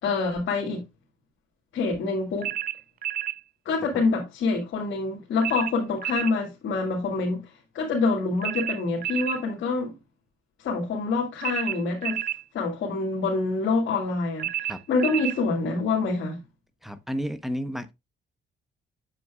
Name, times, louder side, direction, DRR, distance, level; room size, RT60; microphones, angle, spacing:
voice 1, 0.0-0.8 1.7-2.5 3.7-7.5 7.7-9.9 10.6-12.2 12.5-16.4, left 3 dB, 75° left, 2.1 m, -26 dB
sound 1, 2.4-3.4 5.4-6.4 8.4-9.4 11.4-12.4 14.4-15.4, right 12 dB, 50° right, 0.4 m, -30 dB
voice 2, 16.8-17.9, equal, ahead, 0.9 m, -31 dB
8.1 x 6.8 x 2.4 m
cardioid pair, 90°, 20 cm